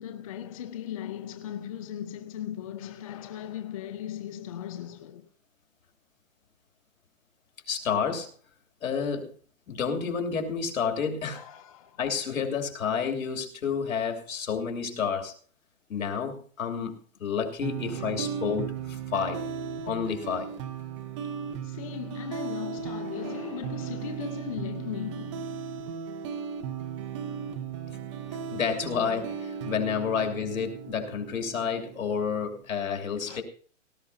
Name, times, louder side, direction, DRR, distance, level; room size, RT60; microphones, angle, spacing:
voice 1, 0.0-5.3 11.3-12.0 17.9-18.1 21.6-25.6 33.3-33.4, left 10 dB, 25° left, 0.5 m, -38 dB
voice 2, 7.7-8.3 8.8-9.3 9.7-11.5 12.0-15.3 15.9-19.4 19.8-20.5 28.5-33.4, left 6 dB, 85° left, 3.0 m, -30 dB
sound 1, 17.6-32.6, right 7 dB, 25° right, 0.7 m, -36 dB
18.0 x 13.0 x 2.8 m
hypercardioid pair, 155°, 40 cm